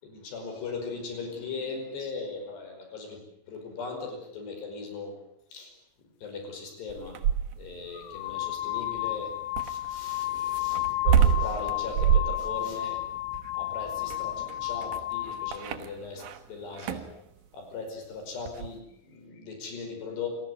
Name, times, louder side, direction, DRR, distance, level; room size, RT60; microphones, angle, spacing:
voice 1, 0.0-3.2 3.5-5.2 5.5-5.7 6.2-7.2 7.6-13.0 13.5-17.1 17.5-20.3, left 4 dB, 60° left, 5 dB, 7.1 m, -39 dB
sound 1, 6.9-7.8 9.6-16.4 16.7-17.2 18.5-18.7, right 8 dB, 65° right, 2.4 m, -27 dB
sound 2, 7.0-7.1 7.9-15.7, left 15 dB, 85° left, 3.8 m, -32 dB
28.0 x 18.5 x 9.5 m, 0.78 s
omnidirectional pair, 5.4 m